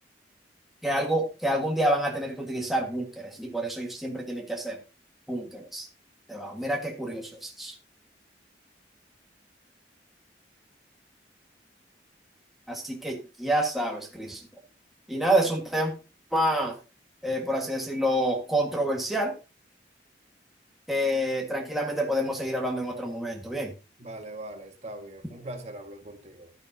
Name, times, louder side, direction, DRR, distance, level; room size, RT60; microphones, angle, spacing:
voice 1, 0.8-4.8 5.3-5.9 6.3-7.8 12.7-14.4 15.1-15.9 16.3-16.8 17.2-19.3 20.9-23.7, right 1 dB, ahead, 0 dB, 1.5 m, -28 dB
voice 2, 24.0-26.5, right 1 dB, 40° right, 4 dB, 1.7 m, -41 dB
12.0 x 10.5 x 2.7 m, 0.30 s
head